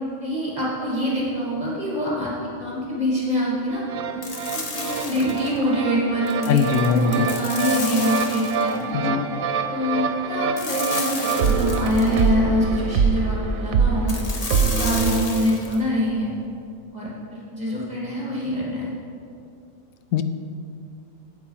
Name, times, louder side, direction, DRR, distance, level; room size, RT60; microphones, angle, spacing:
voice 1, 0.2-2.3 2.6-3.8 4.5-8.9 9.7-14.2 14.6-16.4 16.9-18.9, equal, 30° right, -6 dB, 1.9 m, -25 dB
sound 1, 3.7-15.3, right 5 dB, 75° right, 1.1 m, -25 dB
sound 2, 4.2-5.6 6.3-8.8 10.6-12.3 14.1-15.8, left 3 dB, 30° left, 0.9 m, -32 dB
sound 3, 4.7-11.4, equal, 65° left, 3.4 m, -38 dB
voice 2, 6.5-7.3 8.9-9.3 20.1-20.2, left 7 dB, 80° left, 10 dB, 1.0 m, -21 dB
8.7 x 8.4 x 5.5 m, 2.5 s
omnidirectional pair, 1.4 m